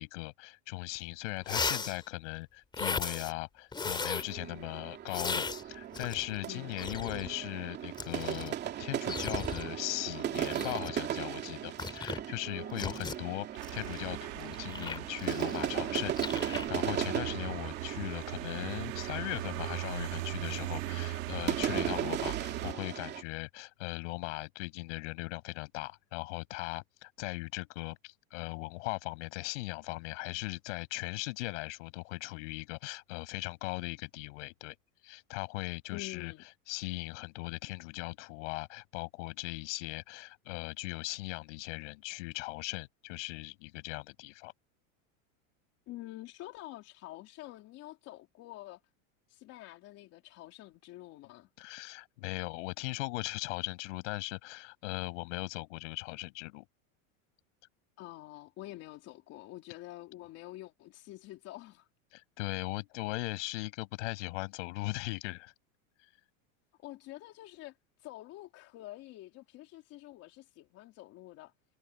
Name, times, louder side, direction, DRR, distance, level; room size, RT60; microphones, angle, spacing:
voice 1, 0.0-13.5 13.7-34.8 35.0-36.3 36.7-44.5 51.6-56.6 62.1-65.5, left 23 dB, 60° left, 6.8 m, -39 dB
sound 1, 1.0-1.1 1.4-2.0 2.7-3.3 3.7-4.3 5.1-6.4 6.7-7.3 7.9-8.6 9.1-9.7 10.4-10.9 11.8-12.2 12.8-13.2 13.6-15.8 16.1-16.7, left 4 dB, 10° left, 4.1 m, -37 dB
sound 2, 4.2-23.2, right 10 dB, 25° right, 2.7 m, -37 dB
voice 2, 6.5-6.8 35.9-36.4 45.9-48.8 49.3-51.5 58.0-61.9 66.8-71.5, left 16 dB, 35° left, 3.4 m, -47 dB
sound 3, 13.5-22.7, right 20 dB, 70° right, 4.2 m, -40 dB
supercardioid pair, 160°, 41 cm